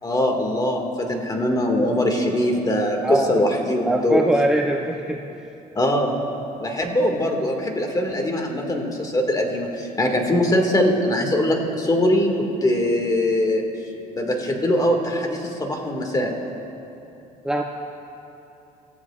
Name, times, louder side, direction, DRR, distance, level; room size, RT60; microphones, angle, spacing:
voice 1, 0.0-4.2 5.8-6.1 6.6-13.6 14.2-16.3, left 1 dB, 20° left, 2 dB, 2.0 m, -22 dB
voice 2, 3.9-5.2 17.4-17.6, right 1 dB, 5° right, 1 dB, 0.6 m, -21 dB
26.5 x 14.5 x 2.4 m, 2.9 s
cardioid pair, 110°, 17 cm